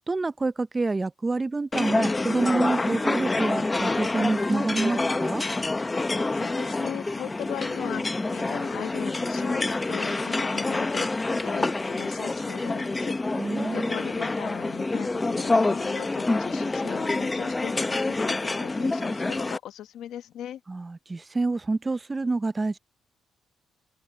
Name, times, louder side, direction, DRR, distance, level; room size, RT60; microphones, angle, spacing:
voice 1, 0.1-5.4 13.4-13.9 20.7-22.8, right 3 dB, 25° right, 0.7 m, -27 dB
sound 1, 1.7-19.6, left 2 dB, 20° left, 0.7 m, -27 dB
voice 2, 6.1-13.1 13.7-17.7 18.0-20.6, left 11 dB, 80° left, 1.4 m, -38 dB
open air
cardioid pair, 90°, 0 cm